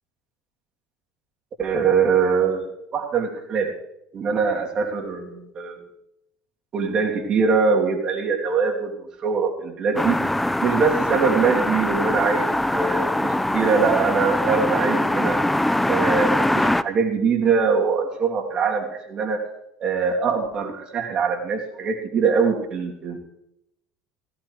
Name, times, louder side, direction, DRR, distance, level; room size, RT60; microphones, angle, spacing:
voice 1, 1.6-3.7 4.1-5.8 6.7-10.2 10.6-15.4 15.9-19.4 19.8-23.2, right 5 dB, 40° right, 1 dB, 2.9 m, -23 dB
sound 1, 10.0-16.8, left 1 dB, 5° left, 0.5 m, -22 dB
16.0 x 16.0 x 3.2 m, 0.82 s
hypercardioid pair, 75°, 2 cm